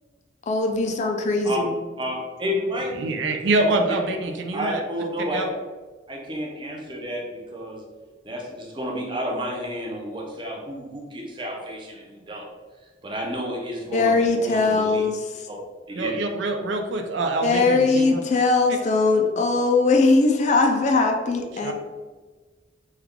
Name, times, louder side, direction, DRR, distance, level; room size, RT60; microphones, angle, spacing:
voice 1, 0.5-1.7 13.9-15.3 17.4-21.7, left 3 dB, 40° left, 3 dB, 0.3 m, -20 dB
voice 2, 2.0-3.1 3.6-3.7 4.5-5.4 6.1-7.8 8.2-12.5 13.0-15.0 15.9-16.2, equal, 25° right, -2 dB, 0.6 m, -31 dB
voice 3, 2.9-4.8 5.3-5.5 15.9-18.2 18.7-18.8 21.6-21.7, right 2 dB, 70° right, 4 dB, 0.4 m, -25 dB
3.2 x 2.3 x 3.5 m, 1.3 s
head